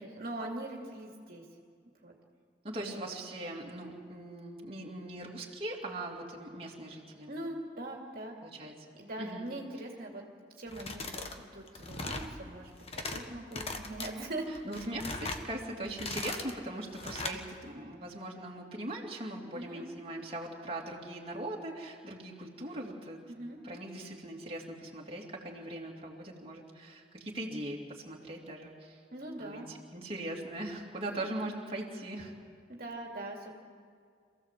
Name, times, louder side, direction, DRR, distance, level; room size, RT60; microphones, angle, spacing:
voice 1, 0.1-1.4 2.0-2.1 2.8-3.1 7.3-8.4 8.9-10.2 10.6-12.7 13.0-14.5 14.7-14.9 19.5-19.8 23.3-23.6 29.1-29.7 32.7-33.5, right 1 dB, 55° right, -1 dB, 2.4 m, -41 dB
voice 2, 2.6-7.3 8.4-8.7 9.2-9.5 14.6-23.2 23.6-29.0 29.4-32.3, right 1 dB, 30° right, -3 dB, 2.8 m, -40 dB
sound 1, 10.7-11.4 11.7-12.3 12.7-13.2 13.5-14.1 14.6-15.4 15.9-16.5 16.9-17.4, left 3 dB, 35° left, 1.4 m, -39 dB
27.0 x 15.5 x 7.6 m, 2.2 s
head